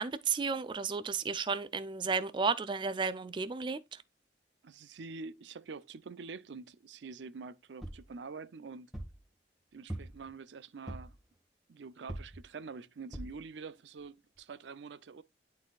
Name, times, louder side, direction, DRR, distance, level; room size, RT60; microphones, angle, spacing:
voice 1, 0.0-4.0, right 5 dB, 25° right, 0.3 m, -33 dB
voice 2, 4.6-8.9 9.7-11.2 11.7-15.2, right 4 dB, 85° right, 0.5 m, -46 dB
sound 1, 7.8-8.1 8.9-9.2 9.9-10.3 10.9-11.2 12.1-12.4 13.1-13.4 14.0-14.1 14.3-14.4, right 1 dB, ahead, 1.5 m, -42 dB
11.0 x 4.0 x 2.3 m
head